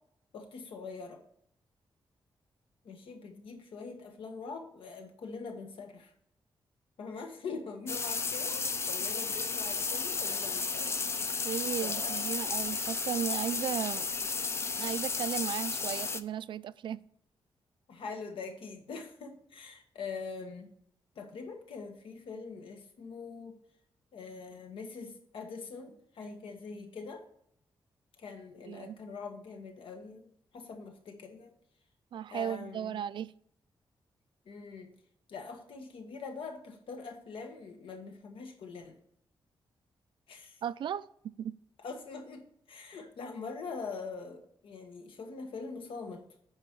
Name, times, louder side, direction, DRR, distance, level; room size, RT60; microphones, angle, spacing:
voice 1, 0.3-1.2 2.8-6.1 7.0-11.5 11.8-12.3 17.9-20.7 21.1-23.6 24.1-27.2 28.2-30.3 30.5-31.5 32.3-33.0 34.4-34.9 35.3-39.0 40.3-40.6 41.8-46.2, left 4 dB, 80° left, 1.6 m, -43 dB
sound 1, 7.9-16.2, left 4 dB, 30° left, 0.5 m, -33 dB
voice 2, 11.4-14.1 14.8-17.0 28.7-29.0 32.1-33.3 40.6-41.6, right 9 dB, 65° right, 0.4 m, -35 dB
9.7 x 5.1 x 4.6 m
wide cardioid pair, 170°, 9 cm